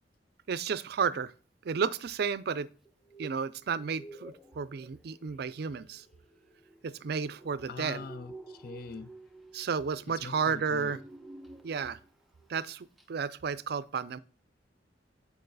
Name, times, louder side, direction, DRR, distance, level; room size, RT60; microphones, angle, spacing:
voice 1, 0.5-1.3 1.6-2.7 3.2-6.0 6.8-8.0 9.5-11.0 11.6-12.0 12.5-14.2, right 6 dB, 60° right, 0.4 m, -32 dB
sound 1, 2.9-12.1 12.4-12.7 13.0-13.1, right 3 dB, ahead, 0.6 m, -51 dB
voice 2, 7.7-9.1 10.1-11.0, left 4 dB, 55° left, 0.4 m, -43 dB
8.9 x 4.7 x 4.0 m
head